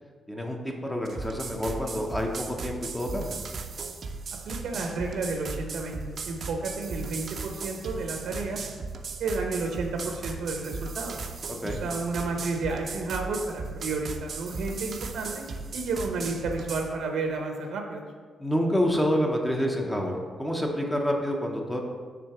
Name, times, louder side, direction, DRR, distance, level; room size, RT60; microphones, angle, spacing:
voice 1, 0.3-3.4 11.5-11.8 18.4-21.8, equal, 5° left, 1 dB, 0.7 m, -28 dB
sound 1, 1.0-16.9, right 4 dB, 45° right, 0.5 m, -37 dB
voice 2, 4.4-8.7 9.2-11.2 11.6-15.4 15.7-18.0, right 3 dB, 85° right, 3 dB, 0.9 m, -31 dB
6.2 x 3.9 x 5.8 m, 1.5 s
wide cardioid pair, 170°, 0 cm